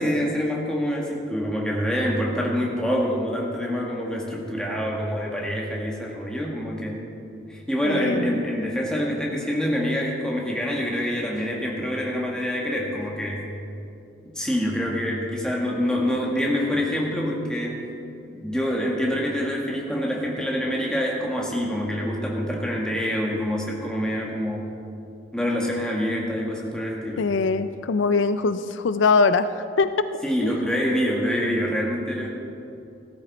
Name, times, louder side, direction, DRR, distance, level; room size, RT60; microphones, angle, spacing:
voice 1, 0.0-7.0 7.5-13.4 14.3-18.0 18.3-24.7 25.3-27.3 30.2-32.3, equal, 5° left, -2 dB, 1.7 m, -26 dB
voice 2, 7.8-8.3 27.2-29.5 29.8-29.9 30.4-30.6, left 4 dB, 80° left, 12 dB, 0.4 m, -22 dB
15.5 x 13.0 x 4.2 m, 2.6 s
head